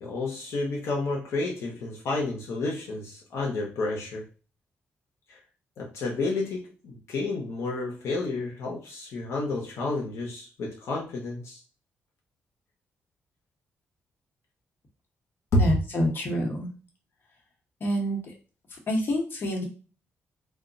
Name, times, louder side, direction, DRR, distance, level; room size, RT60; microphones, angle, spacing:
voice 1, 0.0-4.2 5.3-5.4 5.8-11.6 15.5-15.8, left 2 dB, 75° left, -2 dB, 0.8 m, -30 dB
voice 2, 15.6-16.7 17.8-18.2 18.9-19.7, equal, 45° left, 0 dB, 1.0 m, -27 dB
2.3 x 2.1 x 3.8 m, 0.34 s
cardioid pair, 110°, 5 cm